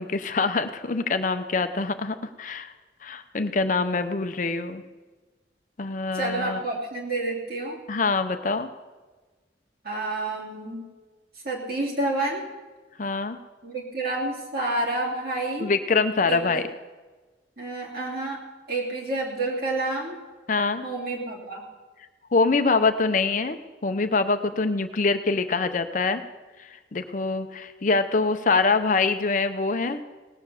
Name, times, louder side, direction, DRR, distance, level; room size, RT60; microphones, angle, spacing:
voice 1, 0.0-2.7 3.0-4.8 5.8-6.6 7.9-8.7 13.0-13.4 15.6-16.6 20.5-20.8 22.3-26.2 26.6-30.0, left 4 dB, 45° left, 9 dB, 0.7 m, -24 dB
voice 2, 6.1-7.8 9.8-10.8 11.4-12.4 13.6-15.7 16.3-16.6 17.6-18.4 18.7-20.2 20.8-21.6, right 2 dB, 60° right, -2 dB, 2.8 m, -29 dB
18.0 x 7.0 x 6.9 m, 1.3 s
head